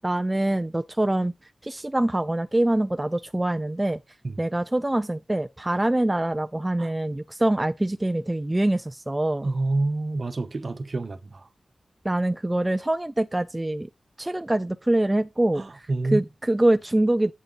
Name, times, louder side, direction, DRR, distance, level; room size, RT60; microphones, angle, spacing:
voice 1, 0.0-1.3 1.6-4.0 4.4-9.5 12.0-13.9 14.2-15.6 16.1-17.3, right 1 dB, 20° right, 0.5 m, -24 dB
voice 2, 9.4-11.5 15.5-16.2, right 2 dB, 55° right, 1.1 m, -28 dB
8.5 x 5.5 x 3.9 m
cardioid pair, 60°, 0 cm